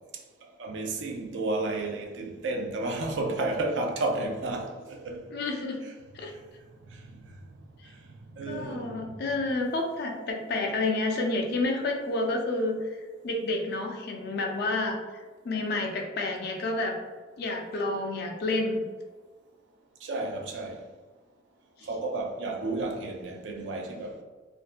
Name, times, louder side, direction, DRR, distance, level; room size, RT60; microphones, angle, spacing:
voice 1, 0.6-5.3 5.8-5.9 6.9-7.2 7.9-8.0 8.4-9.2 20.0-20.8 21.8-24.2, right 2 dB, 65° right, 0.4 m, -32 dB
voice 2, 5.3-5.8 6.1-6.3 8.5-15.0 15.4-17.0 17.4-18.9, left 2 dB, 55° left, 0.4 m, -29 dB
2.5 x 2.1 x 2.4 m
head